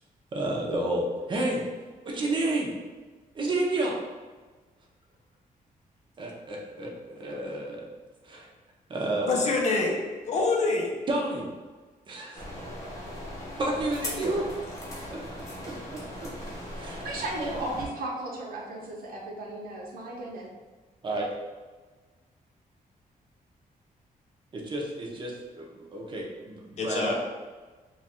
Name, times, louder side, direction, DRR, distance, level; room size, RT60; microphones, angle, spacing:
voice 1, 0.3-1.6 2.0-2.7 3.3-4.0 6.2-7.9 8.2-8.5 8.9-9.5 11.1-11.5 12.1-12.4 13.6-14.4 15.1-15.2 15.9-16.3 16.7-17.1 17.4-17.7 21.0-21.3 24.5-27.1, right 2 dB, 30° right, -1 dB, 0.6 m, -30 dB
voice 2, 9.3-10.0 10.3-10.9 26.8-27.1, left 3 dB, 50° left, 0 dB, 0.6 m, -25 dB
sound 1, 12.4-17.9, left 1 dB, 20° left, 0.7 m, -38 dB
voice 3, 16.9-20.5, right 2 dB, 80° right, -2 dB, 0.8 m, -35 dB
3.1 x 2.4 x 4.2 m, 1.3 s
wide cardioid pair, 170°, 15 cm